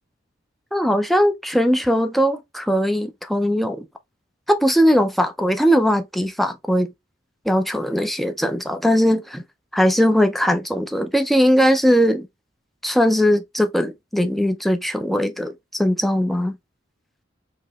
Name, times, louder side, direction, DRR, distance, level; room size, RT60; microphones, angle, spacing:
voice 1, 0.7-3.8 4.5-6.9 7.5-9.4 9.7-12.3 12.8-16.5, equal, ahead, 0.4 m, -19 dB
4.7 x 2.8 x 2.2 m
head